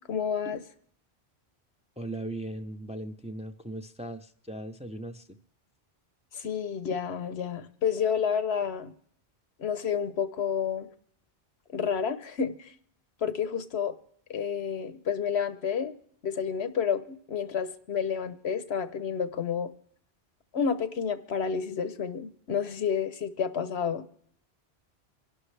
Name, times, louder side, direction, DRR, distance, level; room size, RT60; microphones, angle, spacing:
voice 1, 0.1-0.6 6.3-8.9 9.6-10.9 11.7-12.7 13.2-14.0 14.3-15.9 16.2-19.7 20.5-24.0, left 7 dB, 85° left, 12 dB, 1.2 m, -30 dB
voice 2, 2.0-5.4, right 1 dB, 5° right, 6 dB, 0.6 m, -38 dB
25.5 x 11.5 x 3.3 m, 0.64 s
omnidirectional pair, 1.1 m